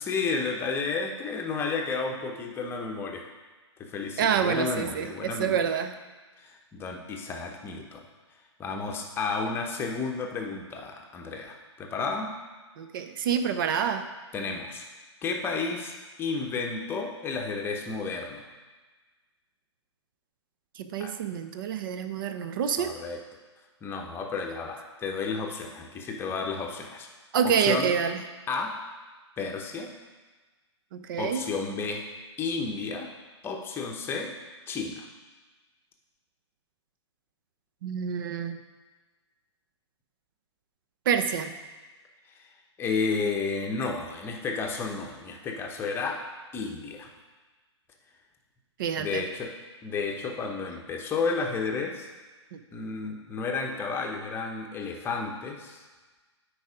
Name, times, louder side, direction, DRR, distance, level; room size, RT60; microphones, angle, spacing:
voice 1, 0.0-3.3 3.8-5.6 6.4-8.0 8.6-12.3 14.3-14.8 15.2-15.9 16.2-18.4 21.0-21.1 22.8-23.2 23.8-27.1 27.6-27.9 28.5-28.7 29.4-29.9 31.2-32.0 32.4-33.1 33.4-34.3 34.7-35.1 42.4-42.5 42.8-46.2 46.5-47.1 49.0-49.5 49.8-52.1 52.7-55.8, left 4 dB, 15° left, 2 dB, 0.9 m, -32 dB
voice 2, 4.2-5.9 12.8-14.1 20.8-22.9 27.3-28.2 30.9-31.5 37.8-38.6 41.1-41.6 48.8-49.3 52.5-52.6, right 7 dB, 45° right, 8 dB, 0.7 m, -27 dB
8.0 x 4.8 x 5.0 m, 1.3 s
hypercardioid pair, 130°, 15 cm